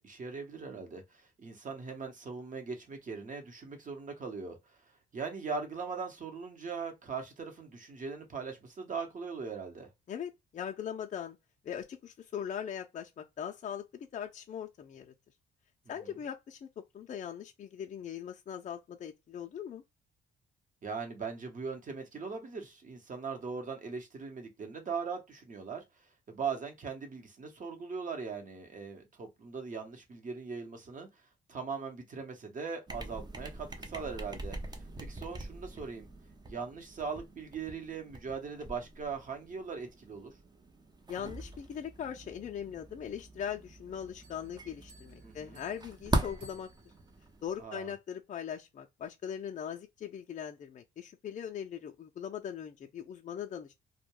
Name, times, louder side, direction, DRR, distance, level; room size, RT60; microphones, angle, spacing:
voice 1, 0.0-4.6 5.1-9.9 15.9-16.1 20.8-25.8 26.3-31.1 31.5-34.6 35.1-36.1 36.5-40.3 45.2-45.6 47.6-47.9, right 5 dB, 40° right, 0.9 m, -40 dB
voice 2, 10.1-11.4 11.6-15.1 15.9-16.7 16.9-19.8 41.1-46.7 47.4-53.7, left 8 dB, 40° left, 0.4 m, -40 dB
sound 1, 32.9-47.6, right 2 dB, 20° right, 0.5 m, -41 dB
Bell, 44.2-47.3, equal, 75° right, 1.1 m, -61 dB
2.2 x 2.1 x 3.0 m
cardioid pair, 90°, 20 cm